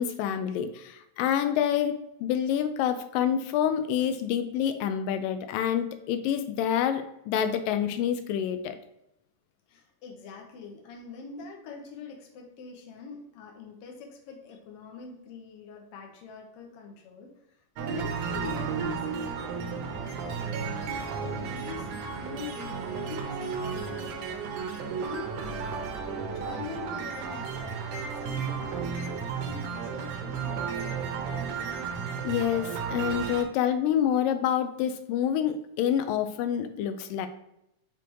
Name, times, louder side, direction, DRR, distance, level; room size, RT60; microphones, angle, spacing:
voice 1, 0.0-8.8 32.2-37.3, left 9 dB, 90° left, 9 dB, 2.3 m, -27 dB
voice 2, 9.7-17.3 17.8-31.1, left 5 dB, 65° left, 2 dB, 1.6 m, -44 dB
sound 1, 17.8-33.4, right 6 dB, 75° right, 1.8 m, -33 dB
6.2 x 3.4 x 4.5 m, 0.81 s
omnidirectional pair, 3.8 m